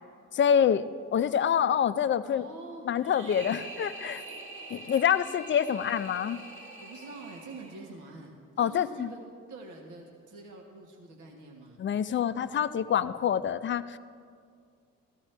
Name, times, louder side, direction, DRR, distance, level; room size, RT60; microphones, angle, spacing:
voice 1, 0.3-0.8 1.1-2.5 2.8-4.2 4.7-6.4 8.6-9.1 11.8-14.0, left 8 dB, 40° left, 13 dB, 0.4 m, -26 dB
voice 2, 2.3-2.9 6.8-9.2 9.5-11.9, right 3 dB, 80° right, 1 dB, 1.5 m, -46 dB
sound 1, 3.0-8.1, right 2 dB, 40° right, 1.3 m, -44 dB
14.5 x 13.0 x 3.3 m, 2.2 s
cardioid pair, 90°, 30 cm